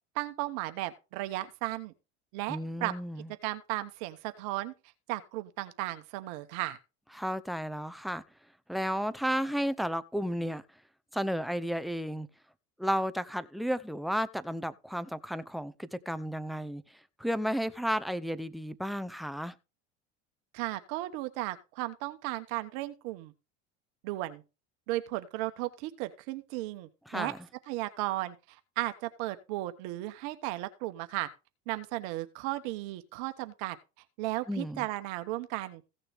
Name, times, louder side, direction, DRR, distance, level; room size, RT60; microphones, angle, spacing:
voice 1, 0.1-1.9 2.3-2.9 3.4-4.7 5.1-6.8 20.5-23.3 24.0-24.4 24.9-27.4 27.7-31.3 31.7-33.8 34.2-35.8, right 17 dB, 70° right, 1.3 m, -35 dB
voice 2, 2.5-3.3 7.1-8.2 8.7-10.6 11.1-12.3 12.8-16.8 17.2-19.5 27.1-27.4 34.5-34.9, equal, ahead, 0.7 m, -33 dB
16.0 x 6.7 x 3.5 m
supercardioid pair, 100°, 35 cm